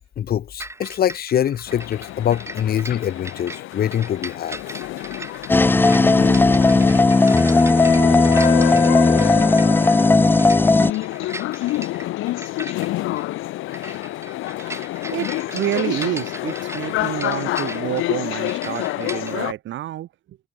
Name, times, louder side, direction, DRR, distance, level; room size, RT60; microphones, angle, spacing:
voice 1, 0.2-4.6, left 10 dB, 50° left, 0.7 m, -24 dB
sound 1, 0.6-19.3, right 2 dB, 15° right, 3.3 m, -38 dB
sound 2, 1.7-19.5, left 17 dB, 85° left, 0.9 m, -28 dB
sound 3, 5.5-10.9, left 3 dB, 10° left, 0.3 m, -15 dB
voice 2, 14.6-20.4, right 13 dB, 70° right, 0.9 m, -29 dB
cardioid pair, 90°, 20 cm